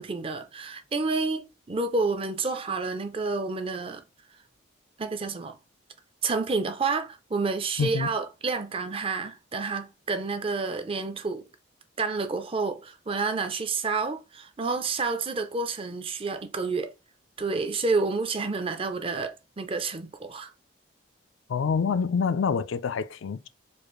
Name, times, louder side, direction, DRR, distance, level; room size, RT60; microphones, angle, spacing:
voice 1, 0.0-4.0 5.0-5.6 6.2-11.5 12.0-16.9 17.4-20.5, right 4 dB, 25° right, 0.5 m, -29 dB
voice 2, 7.8-8.1 21.5-23.5, left 6 dB, 75° left, 0.4 m, -26 dB
4.5 x 2.5 x 3.0 m
head